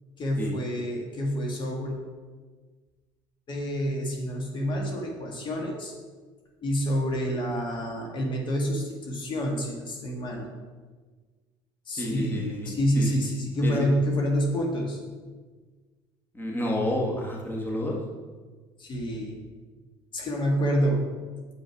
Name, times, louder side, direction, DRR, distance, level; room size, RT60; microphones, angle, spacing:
voice 1, 0.2-1.9 3.5-5.9 6.6-10.5 11.9-15.0 18.8-19.3 20.1-21.1, equal, 45° left, 0 dB, 1.6 m, -28 dB
voice 2, 12.0-13.2 13.6-13.9 16.3-17.9, left 1 dB, 15° left, -1 dB, 1.6 m, -30 dB
6.7 x 5.2 x 4.7 m, 1.4 s
hypercardioid pair, 75°, 12 cm